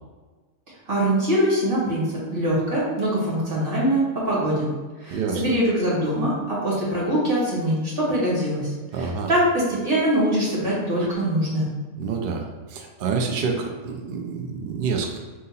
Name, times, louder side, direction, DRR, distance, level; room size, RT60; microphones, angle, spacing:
voice 1, 0.9-4.7 5.0-11.7, right 1 dB, 40° right, -6 dB, 1.7 m, -23 dB
voice 2, 5.1-5.4 8.9-9.3 12.0-15.2, right 5 dB, 80° right, 2 dB, 0.4 m, -27 dB
3.7 x 2.8 x 4.1 m, 1.4 s
omnidirectional pair, 1.5 m